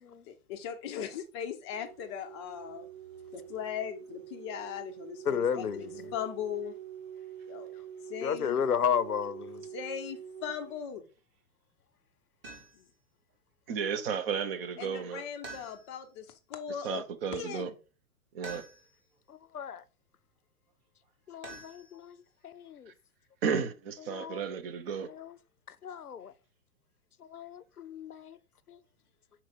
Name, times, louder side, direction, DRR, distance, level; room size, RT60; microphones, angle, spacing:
voice 1, 0.3-2.9 3.3-6.7 7.5-7.7 8.1-8.6 9.7-11.0 12.7-12.9 14.8-17.1 17.3-17.8, left 8 dB, 20° left, 0.5 m, -39 dB
sound 1, 1.7-10.8, right 8 dB, 65° right, 1.4 m, -46 dB
voice 2, 5.3-6.1 8.2-9.6 19.3-19.8 21.3-22.2 22.4-22.9 24.1-24.4 25.0-25.4 25.8-26.3 27.2-28.4 28.7-28.8, left 7 dB, 85° left, 0.6 m, -33 dB
sound 2, 12.4-13.0 15.4-16.2 18.4-19.1 21.4-22.3, right 3 dB, 25° right, 2.2 m, -47 dB
voice 3, 13.7-15.2 16.8-17.7 18.3-18.6 23.4-25.1, right 6 dB, 40° right, 0.9 m, -33 dB
6.1 x 4.4 x 4.0 m
figure-of-eight pair, 105°, 44 cm